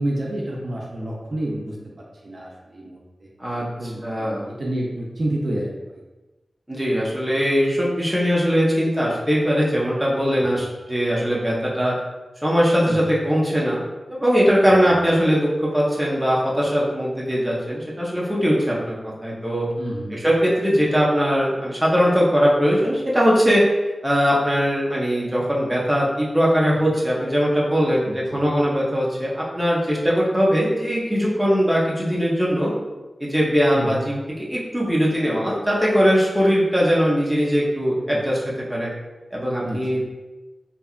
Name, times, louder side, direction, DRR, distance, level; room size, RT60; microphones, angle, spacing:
voice 1, 0.0-3.3 3.8-6.0 10.4-10.7 12.9-13.1 14.7-14.9 19.8-20.2 28.0-28.5 33.7-34.1 38.1-38.2 39.6-39.8, right 1 dB, 55° right, -3 dB, 0.4 m, -30 dB
voice 2, 4.0-4.5 6.7-11.9 12.4-13.8 14.1-19.7 20.1-23.6 24.0-32.7 33.2-34.2 34.5-38.4 38.7-38.9 39.3-40.0, equal, 5° right, -6 dB, 0.6 m, -20 dB
2.7 x 2.3 x 2.3 m, 1.1 s
wide cardioid pair, 90°, 0 cm